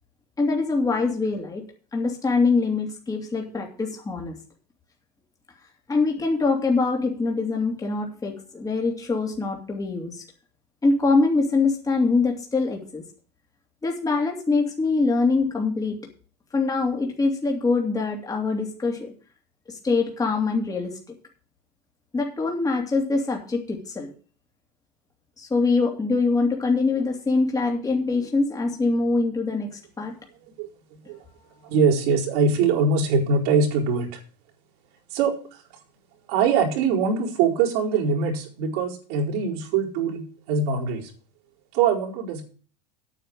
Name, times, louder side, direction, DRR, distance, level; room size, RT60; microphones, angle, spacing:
voice 1, 0.4-1.6 1.9-4.3 5.9-10.2 10.8-13.0 13.8-16.0 16.5-19.1 19.7-21.0 22.1-24.1 25.4-30.2, left 3 dB, 15° left, 1 dB, 2.9 m, -24 dB
voice 2, 31.6-34.2 35.1-35.3 36.3-41.1 41.7-42.4, right 5 dB, 65° right, -2 dB, 4.6 m, -23 dB
9.3 x 8.7 x 6.4 m, 0.39 s
hypercardioid pair, 95°, 21 cm